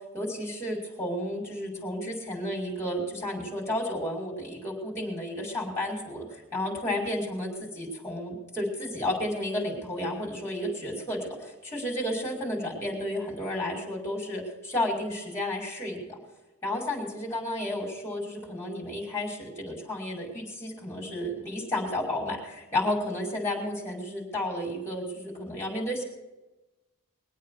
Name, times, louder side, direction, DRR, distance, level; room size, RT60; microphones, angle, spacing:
voice 1, 0.1-16.2 16.6-26.0, left 1 dB, 10° left, -2 dB, 5.6 m, -32 dB
22.5 x 8.5 x 6.7 m, 1.1 s
head